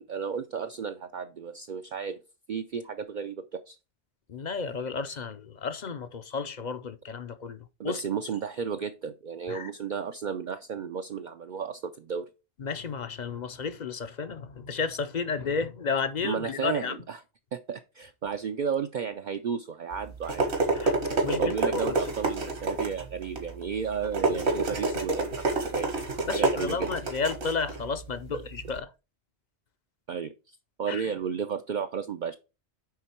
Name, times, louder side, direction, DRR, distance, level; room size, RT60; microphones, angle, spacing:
voice 1, 0.0-2.2 2.5-3.8 7.8-12.2 16.2-17.2 17.5-20.5 21.4-26.9 28.3-28.4 30.1-32.3, right 6 dB, 55° right, 0.6 m, -33 dB
voice 2, 4.3-7.6 7.8-8.0 9.5-9.7 12.6-17.0 20.8-20.9 21.2-21.9 26.3-28.9 30.9-31.0, left 5 dB, 50° left, 0.6 m, -32 dB
sound 1, 19.9-28.8, right 3 dB, 70° right, 1.9 m, -29 dB
9.5 x 3.7 x 4.4 m
omnidirectional pair, 1.1 m